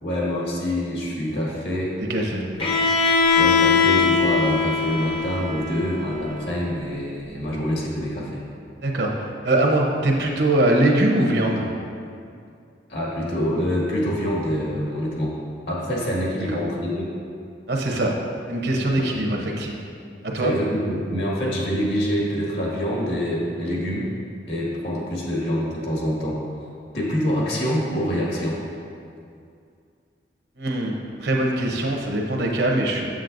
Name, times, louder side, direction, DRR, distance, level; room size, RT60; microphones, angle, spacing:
voice 1, 0.0-1.9 3.3-8.4 12.9-15.4 15.7-17.1 18.9-19.1 20.3-24.1 24.5-26.4 26.9-28.6, equal, 70° left, -4 dB, 1.7 m, -25 dB
voice 2, 2.1-2.4 8.8-9.1 9.4-11.6 16.5-16.6 17.7-18.1 18.5-19.7 20.2-20.5 30.6-33.1, right 1 dB, 70° right, 0 dB, 0.9 m, -22 dB
Bowed string instrument, 2.6-6.5, left 5 dB, 30° left, 0.6 m, -21 dB
7.7 x 7.5 x 2.6 m, 2.4 s
head